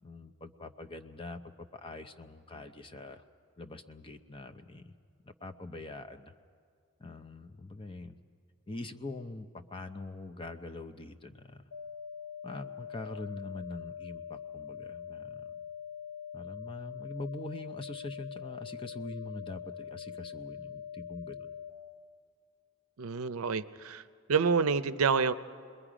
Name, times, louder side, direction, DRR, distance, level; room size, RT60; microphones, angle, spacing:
voice 1, 0.0-3.2 3.6-4.9 5.2-6.3 7.0-8.2 8.7-11.6 12.4-15.5 16.3-21.5, left 2 dB, 25° left, 8 dB, 0.6 m, -43 dB
sound 1, 11.7-21.7, left 8 dB, 90° left, 3.1 m, -43 dB
voice 2, 23.0-24.0 24.3-25.3, right 5 dB, 75° right, 12 dB, 0.6 m, -28 dB
28.5 x 21.5 x 5.0 m, 2.1 s
head